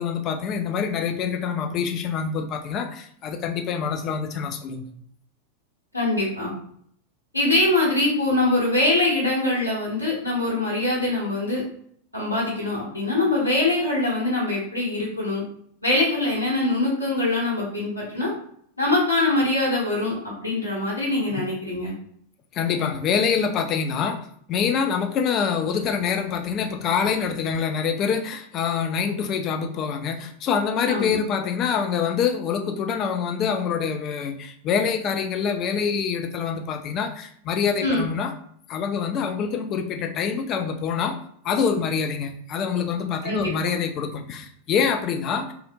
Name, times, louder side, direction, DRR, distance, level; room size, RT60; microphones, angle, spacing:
voice 1, 0.0-4.9 21.3-21.4 22.5-24.2 24.5-38.3 38.7-41.1 41.4-45.5, left 6 dB, 35° left, 5 dB, 0.3 m, -25 dB
voice 2, 5.9-6.5 7.3-11.6 12.1-15.4 15.8-18.3 18.8-21.9 30.9-31.2 37.8-38.0 43.2-43.8, left 2 dB, 85° left, -5 dB, 0.9 m, -23 dB
2.7 x 2.0 x 2.6 m, 0.65 s
figure-of-eight pair, 90°, 0 cm